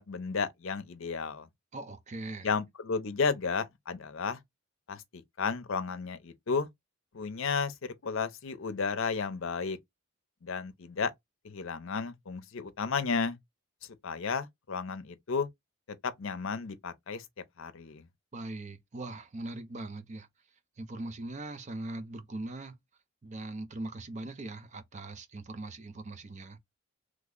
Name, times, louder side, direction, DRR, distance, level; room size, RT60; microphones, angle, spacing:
voice 1, 0.0-1.5 2.4-4.4 4.9-6.7 7.1-7.7 8.0-9.8 10.4-11.1 11.4-13.4 14.0-15.5 16.2-17.2 17.6-18.0, left 5 dB, 65° left, 0.6 m, -33 dB
voice 2, 1.7-2.5 18.3-20.3 20.8-22.8 23.2-26.6, right 2 dB, 35° right, 0.5 m, -40 dB
3.2 x 2.1 x 3.6 m
head